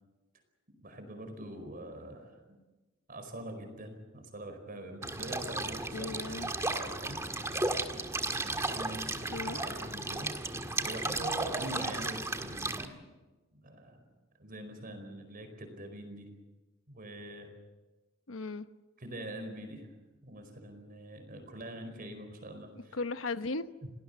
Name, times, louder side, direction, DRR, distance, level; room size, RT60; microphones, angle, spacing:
voice 1, 0.8-2.6 3.1-7.2 8.4-10.3 10.8-13.0 13.6-14.0 14.4-16.3 16.9-17.5 19.0-19.9 20.2-23.0 23.8-23.9, right 1 dB, 45° right, 6 dB, 4.8 m, -44 dB
sound 1, 5.0-12.8, right 2 dB, 15° right, 1.6 m, -34 dB
voice 2, 5.9-6.5 9.3-9.6 18.3-18.7 22.7-23.7, left 3 dB, 80° left, 11 dB, 1.1 m, -37 dB
29.5 x 19.0 x 7.0 m, 1.2 s
head